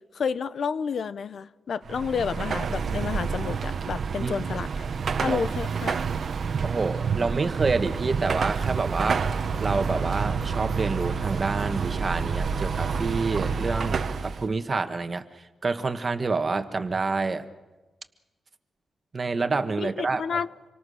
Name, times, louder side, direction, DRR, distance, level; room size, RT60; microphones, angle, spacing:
voice 1, 0.1-4.7 5.2-6.0 19.8-20.5, left 6 dB, 65° left, 0.8 m, -30 dB
Car passing by / Traffic noise roadway noise / Engine, 1.8-14.5, right 5 dB, 60° right, 1.0 m, -28 dB
voice 2, 6.6-15.2 15.6-17.4 19.1-20.4, right 4 dB, 35° right, 1.4 m, -28 dB
27.0 x 24.0 x 6.5 m
wide cardioid pair, 135°, 0 cm